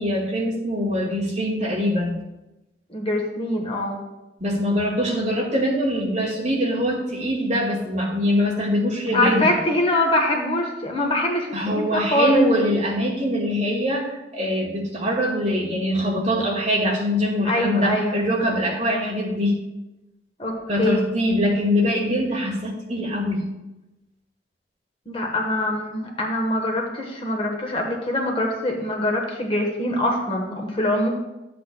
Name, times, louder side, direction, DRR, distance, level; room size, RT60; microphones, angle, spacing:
voice 1, 0.0-2.2 4.4-9.6 11.5-19.6 20.7-23.5, equal, 40° right, -3 dB, 1.9 m, -23 dB
voice 2, 2.9-4.0 9.1-12.5 17.4-18.2 20.4-21.0 25.1-31.1, left 1 dB, 30° left, 1 dB, 1.2 m, -23 dB
12.0 x 7.8 x 2.3 m, 0.99 s
head